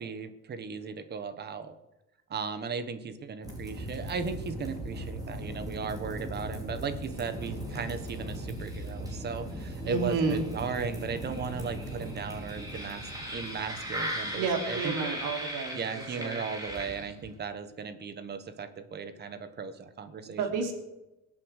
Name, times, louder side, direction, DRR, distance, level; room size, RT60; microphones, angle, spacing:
voice 1, 0.0-1.8 2.3-14.9 15.7-20.7, right 5 dB, 30° right, 11 dB, 1.2 m, -36 dB
sound 1, 3.4-17.3, equal, 10° right, 4.1 m, -38 dB
voice 2, 9.8-10.5 14.3-16.4 20.2-20.7, right 4 dB, 75° right, 4 dB, 3.3 m, -31 dB
22.5 x 8.6 x 6.5 m, 0.98 s
cardioid pair, 175°, 31 cm